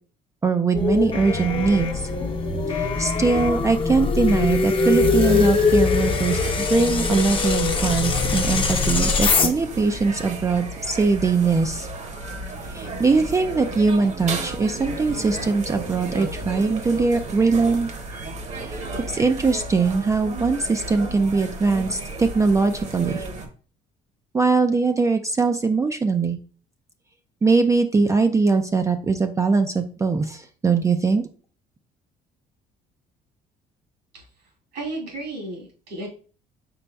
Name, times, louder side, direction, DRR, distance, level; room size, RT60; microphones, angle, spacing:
voice 1, 0.4-2.1 2.7-11.9 12.7-17.9 18.7-18.8 19.1-23.3 24.3-26.4 27.4-31.2, right 4 dB, 20° right, 7 dB, 0.3 m, -21 dB
sound 1, 0.7-9.5, left 4 dB, 30° left, 0.7 m, -22 dB
sound 2, 4.7-23.5, right 2 dB, 40° right, 0.9 m, -34 dB
voice 2, 34.7-36.1, right 2 dB, 80° right, -2 dB, 2.5 m, -33 dB
5.3 x 4.1 x 2.2 m, 0.40 s
cardioid pair, 110°, 17 cm